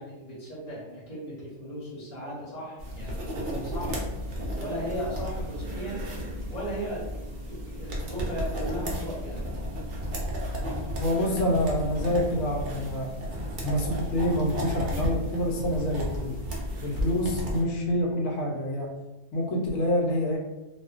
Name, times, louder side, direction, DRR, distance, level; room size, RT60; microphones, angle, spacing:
voice 1, 0.0-4.0 4.5-7.1 7.4-9.5, equal, 35° left, -7 dB, 0.9 m, -37 dB
sound 1, 2.8-17.6, equal, 65° right, 0.5 m, -33 dB
voice 2, 11.0-13.1 13.6-16.4 16.8-18.9 19.3-20.4, left 1 dB, 70° left, 0 dB, 0.9 m, -27 dB
2.4 x 2.2 x 2.3 m, 1.1 s
omnidirectional pair, 1.5 m